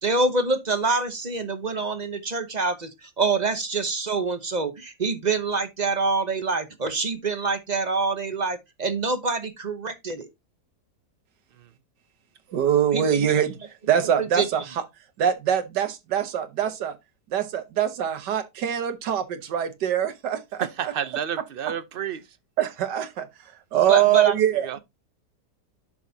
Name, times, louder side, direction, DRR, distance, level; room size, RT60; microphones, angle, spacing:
voice 1, 0.0-10.3 12.9-13.3 14.2-14.5 23.9-24.5, right 3 dB, 35° right, 0.8 m, -26 dB
voice 2, 12.5-13.6 13.9-14.6 15.2-17.0 17.3-20.7 22.6-23.3 23.7-24.7, right 10 dB, 90° right, 1.7 m, -23 dB
voice 3, 20.6-22.4 24.5-24.8, right 8 dB, 70° right, 0.5 m, -31 dB
10.0 x 6.1 x 2.7 m
omnidirectional pair, 1.8 m